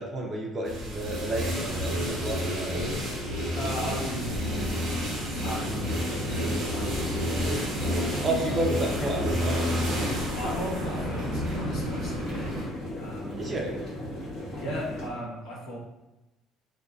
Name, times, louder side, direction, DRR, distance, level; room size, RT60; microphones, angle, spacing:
voice 1, 0.0-2.9 8.2-9.7 13.4-13.8, right 1 dB, 30° right, 0 dB, 0.5 m, -31 dB
sound 1, 0.7-12.6, equal, 60° right, 0.9 m, -30 dB
voice 2, 3.6-9.0 10.4-12.7 12.9-13.4 14.5-15.8, equal, 80° left, -6 dB, 1.0 m, -37 dB
sound 2, 5.4-15.1, equal, 60° left, 0.9 m, -37 dB
2.5 x 2.2 x 2.3 m, 0.98 s
cardioid pair, 115°, 0 cm